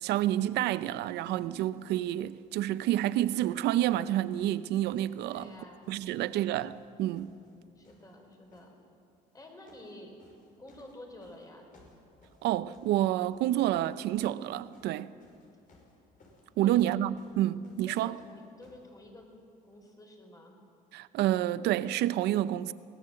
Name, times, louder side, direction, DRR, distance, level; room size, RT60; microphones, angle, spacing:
voice 1, 0.0-5.5 5.9-7.3 12.4-15.1 16.6-18.2 20.9-22.7, right 13 dB, 80° right, 0.7 m, -29 dB
sound 1, 2.2-2.4 2.8-6.3 6.5-7.5 7.8-8.7 9.3-9.9 10.2-18.9 19.7-19.8, left 2 dB, 55° left, 5.7 m, -62 dB
voice 2, 5.3-6.5 7.7-8.7 9.3-10.2 10.6-11.7 16.6-16.9 17.9-19.3 19.6-20.7, left 1 dB, 20° left, 4.6 m, -50 dB
22.0 x 18.5 x 7.7 m
cardioid pair, 110°, 17 cm